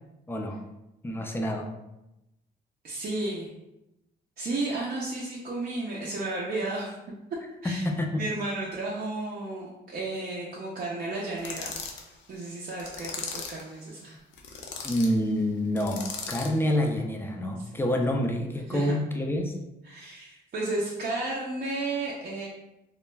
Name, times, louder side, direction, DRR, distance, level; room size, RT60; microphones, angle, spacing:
voice 1, 0.3-0.6 1.0-1.7 7.8-8.2 14.8-19.6, left 1 dB, 10° left, 2 dB, 0.4 m, -27 dB
voice 2, 2.8-3.5 4.4-7.0 7.6-7.8 8.2-11.8 12.1-14.2 18.7-18.9 19.8-22.5, right 2 dB, 45° right, -5 dB, 0.5 m, -33 dB
sound 1, 11.4-12.1 12.8-13.7 14.3-15.1 15.8-16.6, left 5 dB, 65° left, 0.5 m, -37 dB
2.2 x 2.0 x 3.2 m, 0.93 s
cardioid pair, 90°, 20 cm